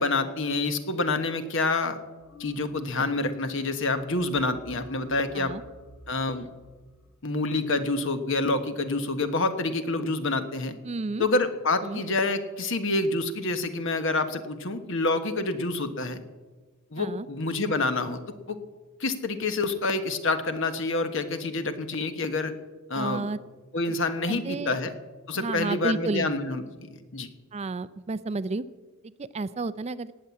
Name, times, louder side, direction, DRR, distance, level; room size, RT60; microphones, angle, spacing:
voice 1, 0.0-2.0 2.4-5.5 6.1-6.5 7.2-10.8 11.2-16.2 16.9-18.2 18.5-18.6 19.0-22.5 22.9-23.3 23.7-24.9 25.3-27.3, left 2 dB, 60° left, 9 dB, 1.3 m, -27 dB
sound 1, 2.2-3.2 3.4-3.7 4.0-7.2, left 3 dB, 80° left, 2.6 m, -48 dB
voice 2, 10.8-11.2 11.8-12.0 17.0-17.3 22.9-23.4 23.9-24.0 24.3-24.8 25.3-26.3 27.5-28.6 29.2-30.1, right 3 dB, 30° right, 15 dB, 0.4 m, -31 dB
18.5 x 7.7 x 8.4 m, 1.3 s
head